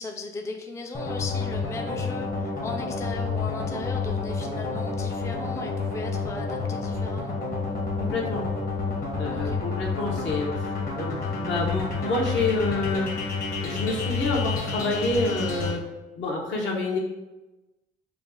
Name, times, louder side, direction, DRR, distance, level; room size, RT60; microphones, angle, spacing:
voice 1, 0.0-7.4 9.3-9.6, left 3 dB, 15° left, 3 dB, 0.4 m, -37 dB
sound 1, 0.9-15.7, left 4 dB, 45° left, 1.3 m, -29 dB
voice 2, 8.0-8.4 9.2-13.1 13.6-15.8 16.1-17.0, left 2 dB, 70° left, -1 dB, 1.1 m, -28 dB
4.9 x 2.4 x 3.6 m, 1.1 s
cardioid pair, 90°, 20 cm